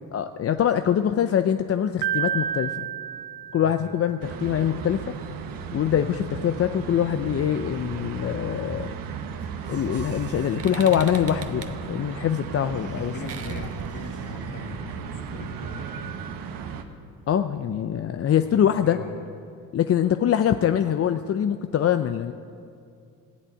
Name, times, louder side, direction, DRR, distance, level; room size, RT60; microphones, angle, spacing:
voice 1, 0.1-2.9 3.5-5.1 5.7-8.9 9.7-13.1 17.3-19.0 19.7-22.3, left 9 dB, 40° left, 9 dB, 0.6 m, -24 dB
Piano, 2.0-4.1, right 9 dB, 85° right, 0.8 m, -30 dB
voice 2, 3.6-4.0 12.6-15.8 18.4-19.2, left 4 dB, 60° left, 4 dB, 2.0 m, -41 dB
sound 1, 4.2-16.8, right 6 dB, 70° right, 1.2 m, -35 dB
sound 2, 9.4-15.0, right 6 dB, 40° right, 1.2 m, -44 dB
16.5 x 8.3 x 8.9 m, 2.4 s
supercardioid pair, 80°, 36 cm